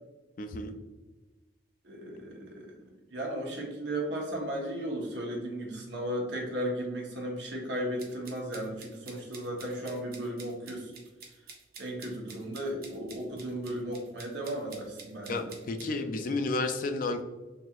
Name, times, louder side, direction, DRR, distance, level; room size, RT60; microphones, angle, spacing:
voice 1, 0.4-0.8 15.3-17.2, left 3 dB, 45° left, 7 dB, 0.3 m, -31 dB
voice 2, 1.8-10.9 11.8-15.5, right 1 dB, 65° right, -1 dB, 0.9 m, -35 dB
sound 1, 8.0-15.9, right 5 dB, 50° right, 0.6 m, -49 dB
3.9 x 2.8 x 2.3 m, 1.2 s
head